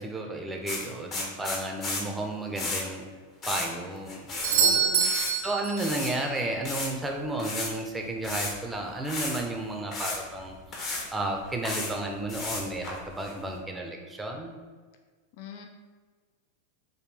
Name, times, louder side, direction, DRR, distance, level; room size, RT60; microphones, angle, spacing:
voice 1, 0.0-3.1 3.4-4.8 5.4-10.6 10.9-14.5, right 1 dB, 10° right, 1 dB, 0.6 m, -33 dB
sound 1, 0.7-2.0 2.6-2.8 3.4-3.7 3.9-4.6 4.8-5.3 5.8-6.1 6.6-6.9 7.4-7.7 8.2-8.7 9.0-9.4 9.9-10.2 10.7-11.1 11.4-11.9 12.3-13.3, left 3 dB, 35° left, 1.0 m, -33 dB
Doorbell, 4.4-6.3 10.3-10.4, right 6 dB, 70° right, 0.6 m, -26 dB
voice 2, 4.6-5.1 15.4-15.7, left 5 dB, 60° left, 5 dB, 0.5 m, -40 dB
5.1 x 2.2 x 3.3 m, 1.5 s
hypercardioid pair, 110°, 0 cm